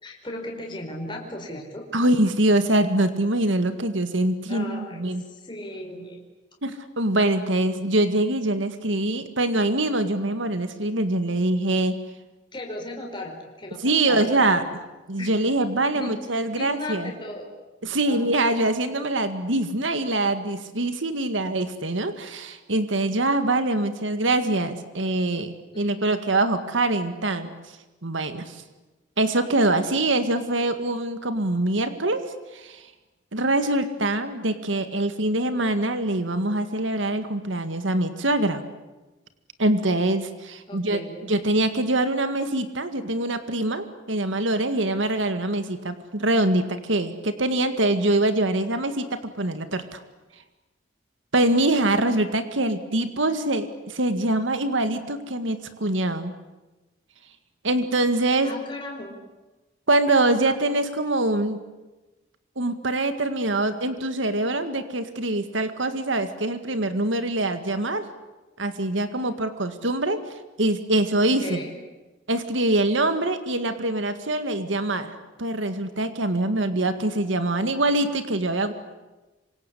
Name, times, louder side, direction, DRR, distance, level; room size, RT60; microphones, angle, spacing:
voice 1, 0.0-1.8 4.5-6.2 12.5-14.6 15.2-15.3 15.9-17.5 18.0-18.3 25.7-26.1 40.7-41.3 58.4-59.1 71.4-71.7, left 1 dB, 25° left, 1 dB, 5.0 m, -37 dB
voice 2, 1.9-5.2 6.6-12.0 13.8-14.6 15.1-17.1 17.8-27.5 28.0-28.6 29.2-32.2 32.5-32.8 33.3-38.6 39.6-41.0 41.3-50.0 51.3-56.3 57.6-58.5 59.9-61.6 62.6-68.0 68.6-70.2 70.6-71.6 72.3-78.7, right 2 dB, 85° right, 9 dB, 2.0 m, -24 dB
27.0 x 25.5 x 8.5 m, 1.1 s
head